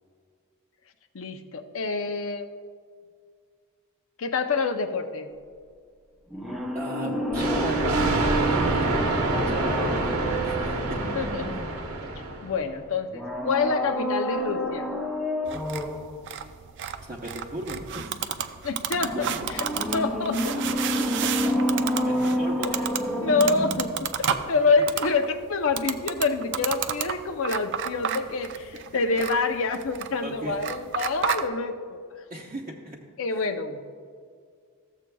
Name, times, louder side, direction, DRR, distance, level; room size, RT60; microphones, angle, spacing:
voice 1, 1.1-2.5 4.2-5.3 11.2-11.5 12.4-14.9 18.6-19.6 19.9-20.6 23.2-32.0 33.2-33.8, left 4 dB, 60° left, 7 dB, 0.6 m, -27 dB
sound 1, 6.3-12.0 13.1-16.1 18.9-24.1 24.4-24.5, equal, ahead, 0.7 m, -29 dB
voice 2, 6.7-9.1 9.5-11.0 17.0-18.5 19.1-19.3 21.0-21.3 21.7-22.8 29.1-29.2 30.2-30.6 32.3-33.0 33.3-33.5, right 1 dB, 35° right, -4 dB, 0.8 m, -37 dB
Thunder, 7.3-12.7, right 2 dB, 80° right, 1.1 m, -26 dB
sound 2, 15.5-31.5, right 8 dB, 55° right, 0.4 m, -32 dB
14.0 x 7.5 x 2.3 m, 2.1 s
head